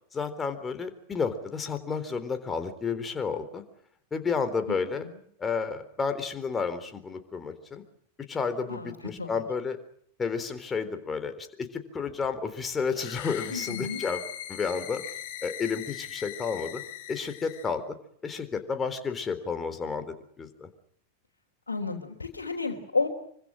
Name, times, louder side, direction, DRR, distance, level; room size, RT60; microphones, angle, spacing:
voice 1, 0.1-3.6 4.1-5.1 5.4-7.8 8.3-9.8 10.2-15.0 15.4-16.8 17.1-17.8 18.2-20.7, left 5 dB, 15° left, 8 dB, 3.8 m, -31 dB
voice 2, 4.7-5.1 8.7-8.9 9.2-9.4 13.5-14.0 21.7-23.1, left 4 dB, 75° left, -2 dB, 3.7 m, -32 dB
sound 1, 12.9-17.7, left 12 dB, 50° left, 5.5 m, -40 dB
26.0 x 25.0 x 6.4 m, 0.67 s
figure-of-eight pair, 90°, 0 cm